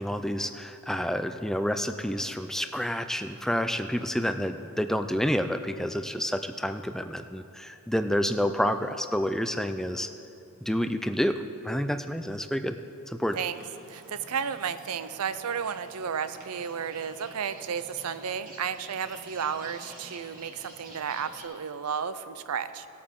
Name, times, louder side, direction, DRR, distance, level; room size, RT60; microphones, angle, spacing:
voice 1, 0.0-10.1 10.6-12.8 13.1-13.4, equal, ahead, 8 dB, 0.4 m, -29 dB
sound 1, 13.3-21.4, right 2 dB, 40° right, 1.9 m, -49 dB
voice 2, 13.9-22.9, right 7 dB, 85° right, 13 dB, 0.5 m, -33 dB
18.5 x 8.6 x 3.7 m, 2.7 s
head